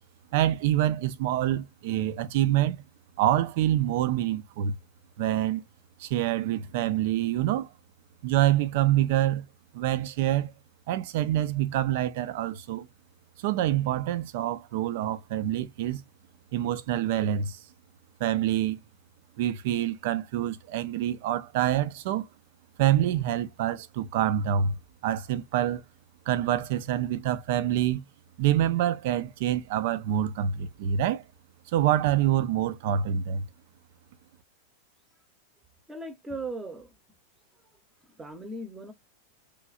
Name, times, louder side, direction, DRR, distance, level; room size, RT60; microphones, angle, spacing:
voice 1, 0.3-2.8 3.2-4.7 5.2-5.6 6.0-7.7 8.2-9.5 9.7-10.5 10.9-12.9 13.4-16.0 16.5-17.6 18.2-18.8 19.4-22.3 22.8-24.8 25.0-25.8 26.3-28.0 28.4-31.2 31.7-33.5, right 11 dB, 50° right, 0.4 m, -26 dB
voice 2, 35.9-37.0 38.0-38.9, right 2 dB, 10° right, 0.8 m, -38 dB
3.1 x 2.6 x 2.4 m
figure-of-eight pair, 90°, 0 cm